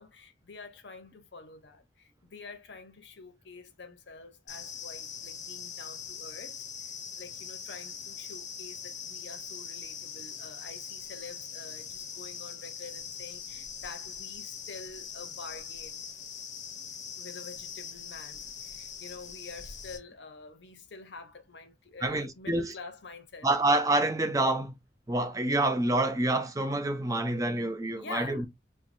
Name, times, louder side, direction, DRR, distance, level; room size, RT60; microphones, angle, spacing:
voice 1, 0.0-16.0 17.2-23.5 27.9-28.5, left 4 dB, 80° left, 0.8 m, -47 dB
sound 1, 4.5-20.0, left 7 dB, 45° left, 0.7 m, -42 dB
voice 2, 22.0-22.7 23.4-24.7 25.1-28.5, right 2 dB, 20° right, 0.5 m, -27 dB
4.5 x 2.2 x 2.6 m
head